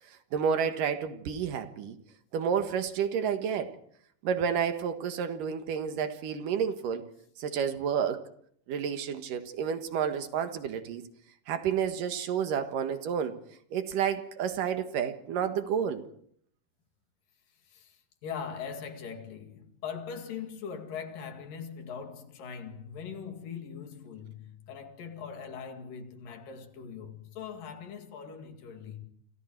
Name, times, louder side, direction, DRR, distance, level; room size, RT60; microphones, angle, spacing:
voice 1, 0.1-2.0 2.3-3.8 4.2-7.1 7.4-8.2 8.7-11.0 11.5-13.4 13.7-16.0, right 7 dB, 80° right, 3.2 m, -30 dB
voice 2, 17.7-29.0, left 6 dB, 85° left, 3.9 m, -41 dB
29.0 x 26.5 x 4.6 m
omnidirectional pair, 3.8 m